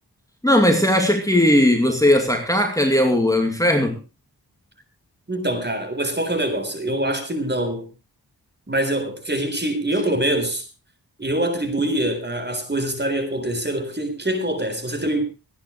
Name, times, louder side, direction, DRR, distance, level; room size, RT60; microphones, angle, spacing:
voice 1, 0.4-4.0, left 1 dB, 10° left, 2.4 m, -18 dB
voice 2, 5.3-7.9 8.7-10.7 11.2-15.3, right 1 dB, 25° right, 3.9 m, -24 dB
26.5 x 9.8 x 3.1 m
wide cardioid pair, 85°, 40 cm